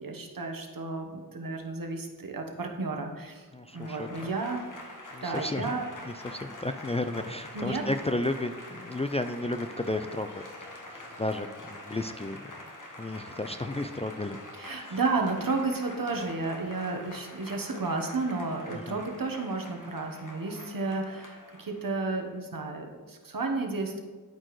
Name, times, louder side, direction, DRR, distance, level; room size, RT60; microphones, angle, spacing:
voice 1, 0.0-3.5 3.7-4.7 5.2-5.8 7.5-7.8 14.6-24.0, right 3 dB, 65° right, 3 dB, 1.1 m, -32 dB
voice 2, 3.5-4.3 5.1-5.7 6.2-10.4 10.9-12.4 13.0-14.4 14.7-15.0 18.7-19.0, left 2 dB, 20° left, 8 dB, 0.3 m, -33 dB
Applause / Crowd, 3.7-22.2, left 1 dB, 55° left, 1.2 m, -45 dB
12.5 x 4.5 x 3.1 m, 1.4 s
wide cardioid pair, 45°, 37 cm